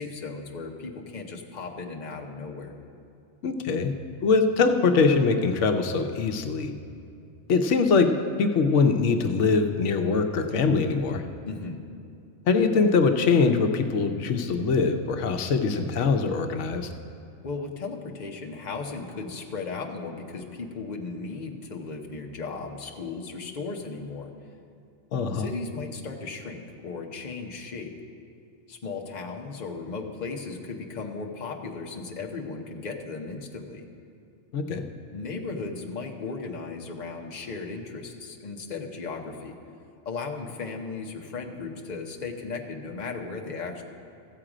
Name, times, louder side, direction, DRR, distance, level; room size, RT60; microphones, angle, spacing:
voice 1, 0.0-2.7 11.5-11.8 17.4-24.3 25.3-27.9 28.7-33.8 35.1-39.6 40.0-43.8, left 4 dB, 40° left, 1 dB, 1.0 m, -36 dB
voice 2, 3.4-3.9 4.2-6.7 7.5-11.2 12.5-16.9 25.1-25.5 34.5-34.8, left 4 dB, 90° left, 6 dB, 1.0 m, -23 dB
14.5 x 7.6 x 4.9 m, 2.5 s
omnidirectional pair, 1.2 m